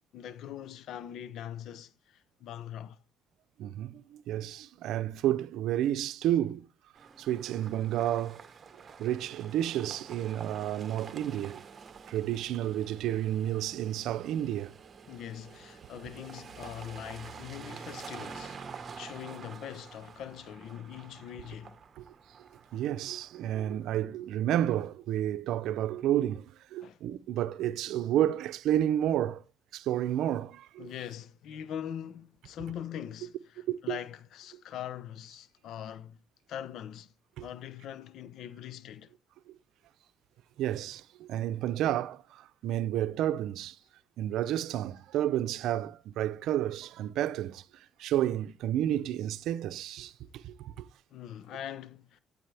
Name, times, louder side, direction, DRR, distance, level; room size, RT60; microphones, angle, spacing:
voice 1, 0.1-3.0 15.1-21.8 26.8-27.0 30.8-36.2 36.5-37.1 37.4-39.1 51.1-52.2, left 10 dB, 80° left, 0.8 m, -42 dB
voice 2, 3.6-6.7 7.2-8.4 9.0-11.6 12.1-14.7 22.0-22.1 22.7-29.4 29.7-30.9 33.7-34.0 37.4-37.5 40.6-43.8 44.2-47.6 48.0-50.1 50.4-50.9, right 12 dB, 85° right, 0.6 m, -31 dB
sound 1, 6.9-23.9, right 6 dB, 45° right, 1.3 m, -48 dB
14.5 x 8.4 x 3.4 m
cardioid pair, 90°, 0 cm